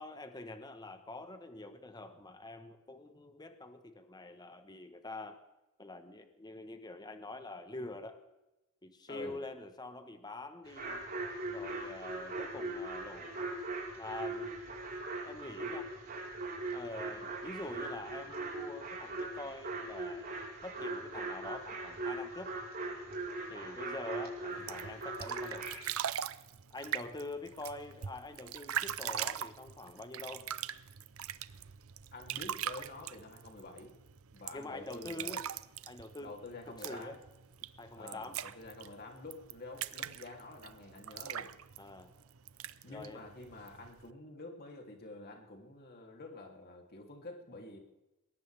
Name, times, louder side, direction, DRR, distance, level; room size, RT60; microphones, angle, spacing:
voice 1, 0.0-5.4 5.8-8.2 8.8-11.0 11.5-13.4 14.0-14.6 15.2-15.9 16.7-20.4 20.6-22.5 23.5-25.7 26.7-30.5 34.5-35.4 35.9-36.4 36.7-37.2 37.8-38.4 41.8-42.1 42.9-43.2, left 2 dB, 20° left, 8 dB, 1.2 m, -45 dB
voice 2, 9.1-9.4 32.1-33.9 34.3-35.4 36.2-37.2 37.9-41.5 42.8-47.8, left 2 dB, 45° left, 2 dB, 3.1 m, -48 dB
sound 1, 10.7-25.7, right 2 dB, 45° right, 4.5 m, -40 dB
sound 2, 24.5-44.1, right 9 dB, 65° right, 0.7 m, -42 dB
20.5 x 18.5 x 3.5 m, 0.99 s
head